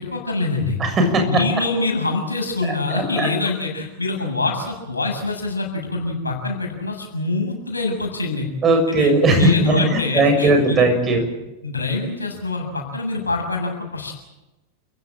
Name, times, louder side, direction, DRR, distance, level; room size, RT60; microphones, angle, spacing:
voice 1, 0.0-0.8 1.2-8.5 9.0-10.8 11.6-14.1, left 3 dB, 80° left, 1 dB, 7.3 m, -25 dB
voice 2, 0.8-1.3 2.6-3.3 8.6-11.2, right 2 dB, 25° right, 4 dB, 6.8 m, -18 dB
29.0 x 16.5 x 8.9 m, 1.0 s
figure-of-eight pair, 90°, 0 cm